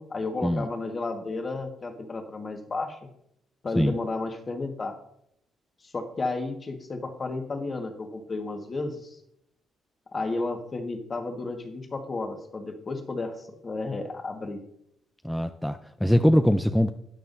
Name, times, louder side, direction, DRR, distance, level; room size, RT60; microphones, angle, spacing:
voice 1, 0.0-3.0 3.6-5.0 5.8-9.2 10.1-14.6, left 3 dB, 35° left, 4 dB, 1.6 m, -32 dB
voice 2, 15.2-16.9, equal, 5° left, 8 dB, 0.4 m, -22 dB
13.0 x 9.4 x 2.7 m, 0.75 s
cardioid pair, 90°, 0 cm